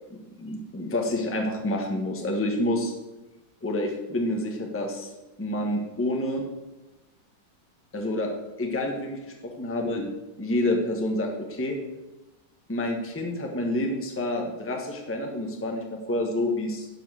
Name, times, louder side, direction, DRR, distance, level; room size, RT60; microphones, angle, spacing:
voice 1, 0.1-2.9 3.6-5.1 5.4-6.5 7.9-8.3 8.6-10.0 10.4-11.8 12.7-16.9, left 1 dB, 10° left, 2 dB, 0.9 m, -28 dB
11.0 x 4.6 x 6.2 m, 1.0 s
omnidirectional pair, 2.1 m